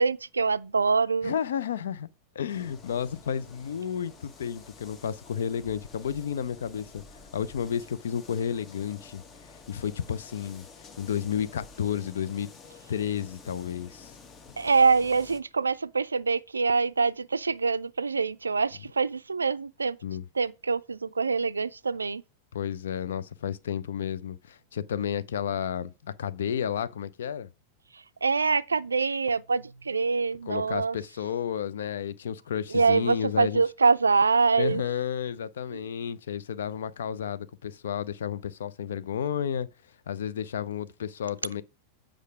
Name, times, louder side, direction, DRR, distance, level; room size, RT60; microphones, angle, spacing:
voice 1, 0.0-1.4 14.6-20.0 20.3-22.2 27.9-31.0 32.7-34.8 35.7-35.9, right 4 dB, 75° right, 0.4 m, -25 dB
voice 2, 1.2-2.1 2.3-7.0 7.3-9.2 9.7-10.6 11.0-12.5 12.9-14.1 20.0-20.2 22.5-27.5 30.5-33.6 34.6-39.7 40.1-41.6, left 8 dB, 65° left, 0.5 m, -32 dB
sound 1, 2.5-15.4, left 4 dB, 25° left, 1.0 m, -50 dB
8.3 x 5.1 x 4.8 m
figure-of-eight pair, 90°, 0 cm